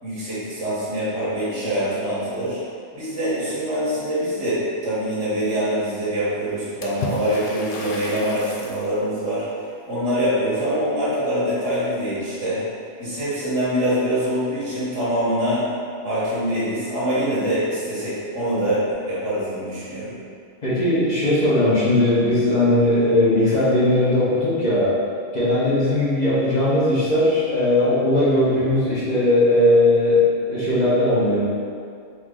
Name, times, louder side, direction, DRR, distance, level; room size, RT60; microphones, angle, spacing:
voice 1, 0.0-2.6 2.9-9.5 9.9-12.6 13.0-15.7 16.0-20.2, equal, 80° right, -9 dB, 1.6 m, -24 dB
Water / Splash splatter, 6.8-8.9, left 4 dB, 60° left, 0.6 m, -33 dB
voice 2, 20.6-25.0 25.3-31.4, left 1 dB, 35° left, -10 dB, 1.2 m, -18 dB
3.9 x 3.0 x 3.8 m, 2.3 s
omnidirectional pair, 1.2 m